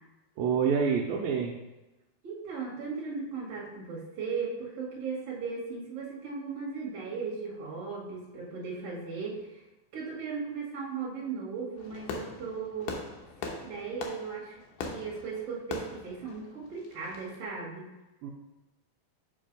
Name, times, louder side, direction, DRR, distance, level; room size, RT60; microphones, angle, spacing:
voice 1, 0.4-1.5 18.2-18.3, right 6 dB, 80° right, 0 dB, 2.3 m, -27 dB
voice 2, 2.2-9.6 9.9-13.0 13.4-14.6 14.9-17.9, right 5 dB, 50° right, -3 dB, 2.3 m, -37 dB
Fireworks, 11.8-17.4, left 5 dB, 75° left, 2.2 m, -41 dB
5.4 x 5.3 x 5.1 m, 1.0 s
omnidirectional pair, 4.3 m